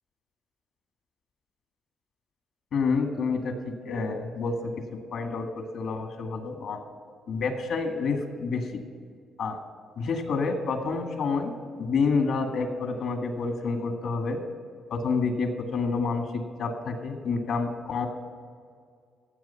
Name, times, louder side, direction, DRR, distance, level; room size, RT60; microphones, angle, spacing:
voice 1, 2.7-4.7 5.1-6.8 7.3-8.8 9.4-9.6 10.0-11.5 11.8-14.4 14.9-18.1, left 4 dB, 70° left, 4 dB, 2.0 m, -28 dB
16.0 x 8.1 x 5.8 m, 2.1 s
cardioid pair, 90°, 0 cm